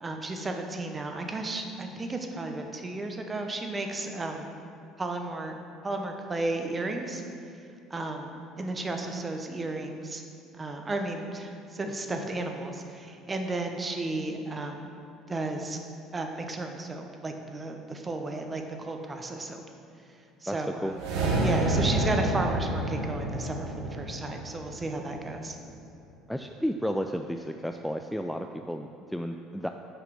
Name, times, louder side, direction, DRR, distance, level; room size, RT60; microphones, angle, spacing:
voice 1, 0.0-4.5 5.0-5.6 5.8-7.2 7.9-10.2 10.5-14.9 15.3-15.8 16.1-19.6 20.4-20.9 21.4-25.6, right 2 dB, 25° right, 4 dB, 0.9 m, -33 dB
voice 2, 20.5-20.9 26.3-29.7, equal, ahead, 5 dB, 0.3 m, -32 dB
sound 1, 20.9-25.3, right 1 dB, 75° right, 1.2 m, -29 dB
6.6 x 4.9 x 5.9 m, 2.5 s
hypercardioid pair, 70°, 0 cm